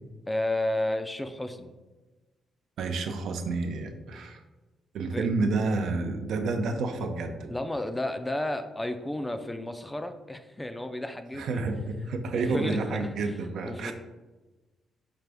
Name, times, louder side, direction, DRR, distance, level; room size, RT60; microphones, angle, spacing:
voice 1, 0.3-1.7 5.1-5.3 7.5-11.6 12.3-13.3 13.7-13.9, left 1 dB, 15° left, 8 dB, 0.3 m, -32 dB
voice 2, 2.8-4.4 4.9-7.5 11.3-13.9, right 3 dB, 75° right, 6 dB, 0.4 m, -29 dB
4.7 x 2.5 x 3.3 m, 1.2 s
cardioid pair, 80°, 0 cm